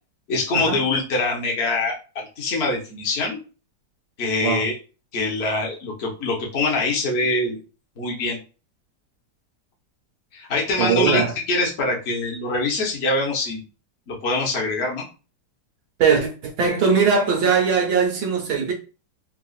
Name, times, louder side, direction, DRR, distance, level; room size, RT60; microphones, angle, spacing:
voice 1, 0.3-3.4 4.2-4.7 5.1-7.6 8.0-8.4 10.3-13.6 14.1-15.1, left 2 dB, 45° left, 1.0 m, -24 dB
voice 2, 10.8-11.3 16.0-18.7, right 5 dB, 65° right, 1.3 m, -20 dB
3.6 x 2.4 x 2.4 m
omnidirectional pair, 1.9 m